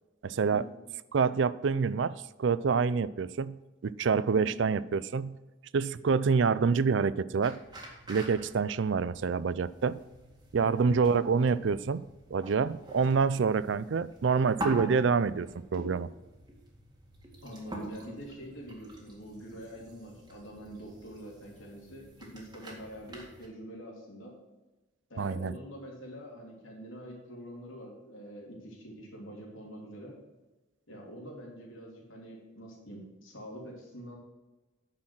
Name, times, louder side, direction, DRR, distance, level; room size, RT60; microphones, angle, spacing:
voice 1, 0.2-0.6 1.1-5.4 5.7-7.6 8.1-10.0 10.5-16.1 25.2-25.5, right 5 dB, 65° right, 17 dB, 0.4 m, -27 dB
sound 1, 7.4-23.5, right 1 dB, 20° right, 2.0 m, -45 dB
voice 2, 17.4-24.3 25.1-30.2 30.9-34.2, equal, 80° left, -2 dB, 3.3 m, -45 dB
9.7 x 6.6 x 6.1 m, 1.1 s
head